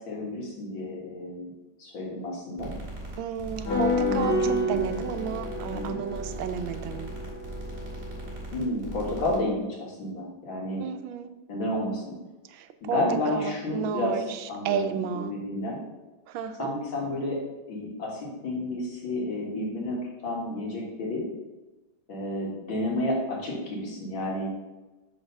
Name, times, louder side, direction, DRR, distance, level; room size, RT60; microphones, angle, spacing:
voice 1, 0.1-1.5 1.8-2.7 3.9-4.8 5.7-6.0 8.5-10.8 11.5-12.0 12.8-14.2 14.5-15.8 16.6-17.4 17.7-21.2 22.1-24.5, left 1 dB, 90° left, -3 dB, 2.5 m, -31 dB
sound 1, 2.6-9.4, right 2 dB, 45° right, 2.1 m, -39 dB
voice 2, 3.2-4.4 4.7-7.1 10.8-11.3 12.5-13.0 13.3-15.4 16.3-16.7, right 8 dB, 85° right, 9 dB, 1.4 m, -32 dB
sound 2, 3.6-8.4, left 1 dB, 50° left, 2.2 m, -30 dB
5.9 x 4.6 x 5.3 m, 1.1 s
omnidirectional pair, 2.1 m